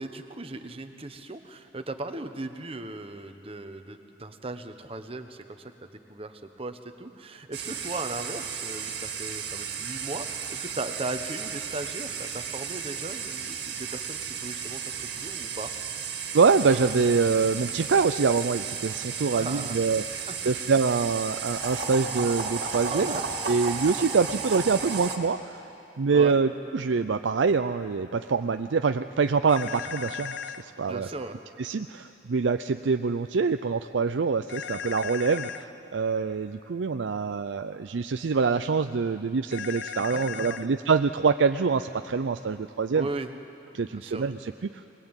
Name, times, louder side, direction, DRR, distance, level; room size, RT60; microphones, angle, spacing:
voice 1, 0.0-15.7 19.3-20.4 22.6-23.3 26.1-26.4 30.9-31.4 40.0-40.6 42.9-43.3 43.9-44.3, right 2 dB, 30° right, 7 dB, 1.1 m, -38 dB
sound 1, 7.5-25.2, right 6 dB, 60° right, 2.1 m, -34 dB
voice 2, 16.3-23.2 23.5-25.6 26.0-31.1 31.6-43.1 43.7-44.8, right 5 dB, 80° right, 8 dB, 0.5 m, -25 dB
sound 2, 29.5-30.6 34.5-35.6 39.5-40.7, left 7 dB, 65° left, 0.8 m, -36 dB
21.5 x 21.5 x 9.0 m, 2.9 s
head